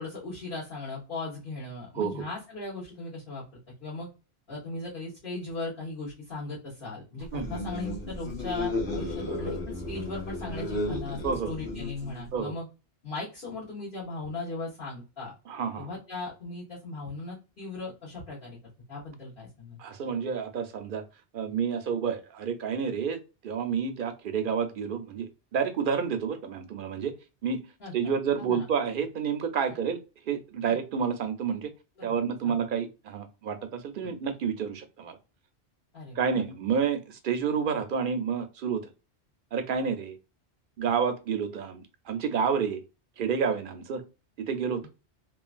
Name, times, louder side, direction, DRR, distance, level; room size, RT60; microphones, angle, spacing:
voice 1, 0.0-3.4 3.8-4.1 4.5-12.7 13.0-15.3 15.8-18.6 18.9-19.8 27.8-28.7 30.7-30.8 32.0-32.6 34.0-34.1 35.9-36.5 44.8-44.9, left 3 dB, 55° left, 1.5 m, -38 dB
sound 1, 7.3-12.4, left 2 dB, 75° left, 1.5 m, -34 dB
voice 2, 15.5-15.9 19.8-21.0 21.3-27.2 27.4-27.6 27.9-30.0 30.3-31.7 32.0-35.2 36.2-38.8 39.5-40.2 40.8-42.8 43.2-44.0 44.4-44.9, right 6 dB, 60° right, 0.7 m, -29 dB
3.1 x 2.4 x 2.3 m
omnidirectional pair, 1.1 m